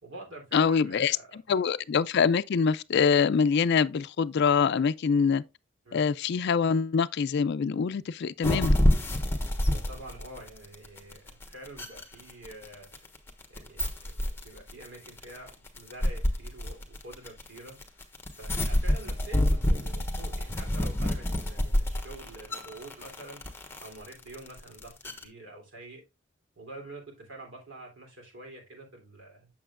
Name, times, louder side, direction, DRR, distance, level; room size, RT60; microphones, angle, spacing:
voice 1, 0.0-1.6 5.8-6.0 9.6-13.0 13.5-18.0 18.3-26.0 26.5-29.5, right 2 dB, 70° right, 3.1 m, -47 dB
voice 2, 0.5-5.4 5.9-8.8, left 6 dB, 55° left, 0.4 m, -25 dB
sound 1, 8.4-25.2, left 1 dB, 10° left, 1.2 m, -27 dB
7.9 x 7.0 x 2.4 m
head